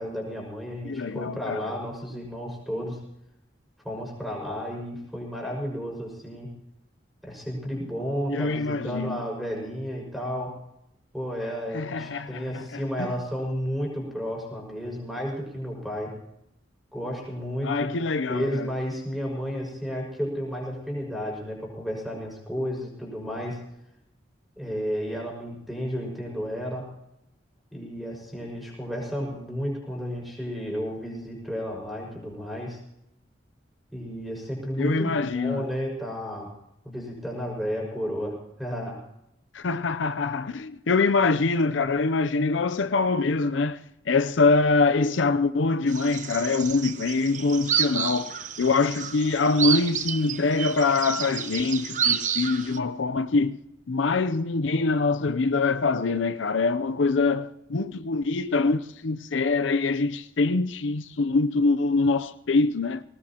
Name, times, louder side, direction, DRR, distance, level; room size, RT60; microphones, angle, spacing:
voice 1, 0.0-3.0 3.8-6.6 7.2-10.6 11.1-16.2 16.9-18.0 18.3-23.7 24.6-26.9 27.7-32.8 33.9-36.5 36.8-39.0, equal, ahead, 5.8 m, -32 dB
voice 2, 0.8-1.7 8.3-9.2 11.7-13.1 17.6-18.7 34.8-35.7 39.5-43.8 44.1-53.6 53.9-63.0, left 3 dB, 85° left, 0.6 m, -24 dB
sound 1, 45.9-52.8, right 8 dB, 40° right, 0.8 m, -30 dB
22.0 x 18.5 x 2.9 m
head